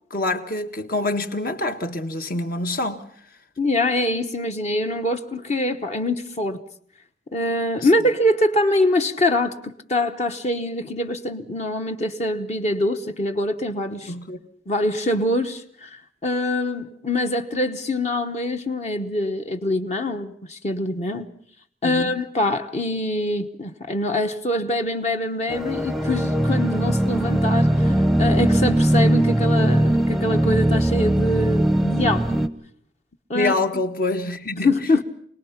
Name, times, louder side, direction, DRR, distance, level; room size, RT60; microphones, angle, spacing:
voice 1, 0.1-3.0 14.1-14.4 21.8-22.1 33.3-34.7, left 2 dB, 55° left, 1.5 m, -26 dB
voice 2, 3.6-6.6 7.3-14.1 14.7-21.3 21.8-32.4 33.3-33.8 34.6-35.0, left 1 dB, 40° left, 1.1 m, -24 dB
sound 1, 25.5-32.5, right 1 dB, ahead, 0.8 m, -20 dB
26.0 x 19.0 x 5.8 m
head